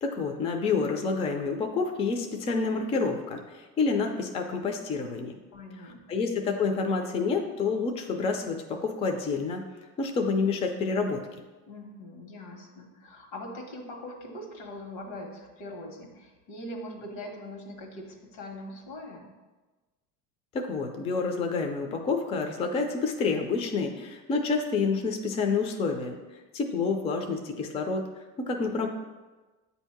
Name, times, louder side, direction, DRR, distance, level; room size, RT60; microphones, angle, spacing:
voice 1, 0.0-5.4 6.1-9.6 10.0-11.2 20.5-26.2 26.5-28.0 28.4-28.9, left 4 dB, 20° left, 4 dB, 0.4 m, -28 dB
voice 2, 5.5-6.3 11.7-19.3, left 1 dB, 85° left, 2 dB, 1.4 m, -42 dB
8.1 x 2.7 x 5.7 m, 1.2 s
cardioid pair, 165°, 31 cm